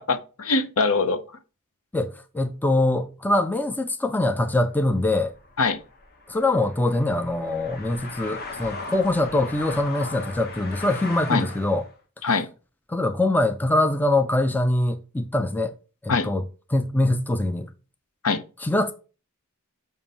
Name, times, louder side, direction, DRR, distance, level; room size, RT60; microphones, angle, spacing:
voice 1, 0.1-1.2 5.6-5.8 11.3-11.4 12.2-12.5 16.1-16.3 18.2-18.4, left 4 dB, 65° left, 0.7 m, -22 dB
voice 2, 1.9-5.3 6.3-11.9 12.9-15.7 16.0-16.4 16.7-17.7 18.6-18.9, left 2 dB, 10° left, 0.4 m, -23 dB
sound 1, 4.8-11.9, left 3 dB, 45° left, 1.0 m, -38 dB
7.1 x 2.6 x 5.3 m
head